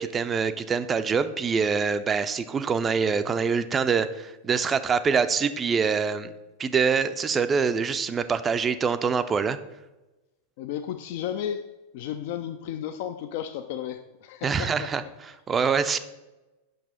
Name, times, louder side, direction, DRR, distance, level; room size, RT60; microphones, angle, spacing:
voice 1, 0.0-6.3 6.6-9.6 14.4-15.0 15.5-16.0, right 5 dB, 20° right, 12 dB, 0.4 m, -25 dB
voice 2, 10.6-11.6 11.9-14.9, left 10 dB, 50° left, 8 dB, 0.4 m, -33 dB
8.0 x 6.0 x 4.2 m, 1.0 s
figure-of-eight pair, 90°, 0 cm